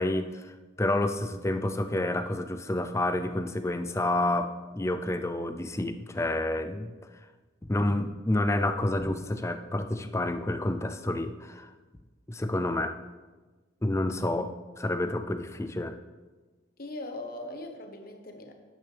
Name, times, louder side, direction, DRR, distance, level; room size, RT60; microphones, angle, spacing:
voice 1, 0.0-6.9 7.6-11.7 12.3-12.9 13.8-16.0, left 1 dB, 15° left, 9 dB, 0.4 m, -29 dB
voice 2, 16.8-18.5, left 1 dB, 50° left, 4 dB, 1.2 m, -40 dB
10.5 x 10.0 x 3.4 m, 1.3 s
head